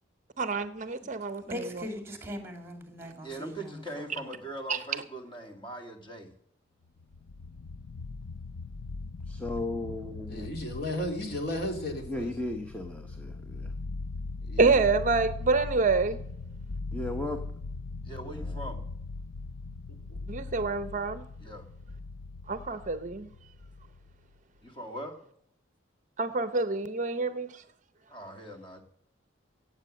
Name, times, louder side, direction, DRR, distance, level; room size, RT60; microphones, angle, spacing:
voice 1, 0.4-1.4 4.7-4.8 14.6-16.2 20.3-21.2 22.5-23.3 26.2-27.5, right 4 dB, 40° right, 0.6 m, -27 dB
voice 2, 1.4-4.3, equal, 10° right, 2.1 m, -40 dB
voice 3, 3.2-6.3 18.0-18.8 21.4-21.7 24.6-25.2 28.1-28.8, right 1 dB, 25° left, 1.9 m, -41 dB
sound 1, 7.0-24.3, left 3 dB, 85° left, 0.5 m, -40 dB
voice 4, 9.3-10.5 12.1-13.7 16.9-17.4 18.5-18.6, left 2 dB, 5° left, 0.8 m, -35 dB
voice 5, 10.3-12.3 14.5-14.8 19.9-20.2, left 1 dB, 50° left, 2.6 m, -34 dB
17.0 x 7.8 x 6.4 m
head